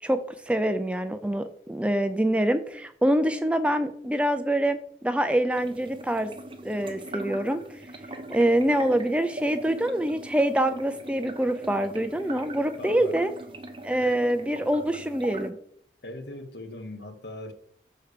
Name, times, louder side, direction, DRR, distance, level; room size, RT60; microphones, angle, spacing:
voice 1, 0.0-6.3 6.6-7.6 8.3-13.3 13.8-15.6, right 1 dB, 5° right, 0.4 m, -25 dB
sound 1, 5.5-15.5, right 1 dB, 30° right, 1.0 m, -41 dB
voice 2, 12.8-13.2 14.0-14.2 16.0-17.5, left 1 dB, 75° left, 1.2 m, -39 dB
6.9 x 4.5 x 6.7 m
head